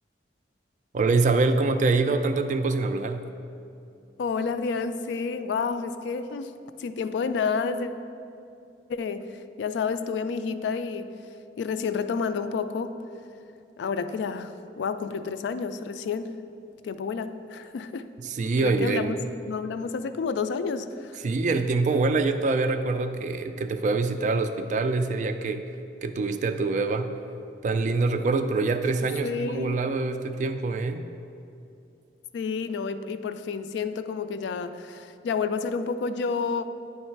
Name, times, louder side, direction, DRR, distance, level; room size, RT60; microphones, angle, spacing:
voice 1, 0.9-3.2 18.2-19.1 21.2-25.7 26.0-27.1 27.6-31.1, right 3 dB, 45° right, 8 dB, 0.3 m, -25 dB
voice 2, 4.2-6.5 6.8-7.9 8.9-11.1 11.6-13.0 13.8-16.4 16.8-18.1 18.6-19.2 19.5-21.2 29.0-29.8 32.3-36.7, left 5 dB, 75° left, 11 dB, 0.3 m, -30 dB
8.9 x 3.2 x 4.5 m, 2.6 s
head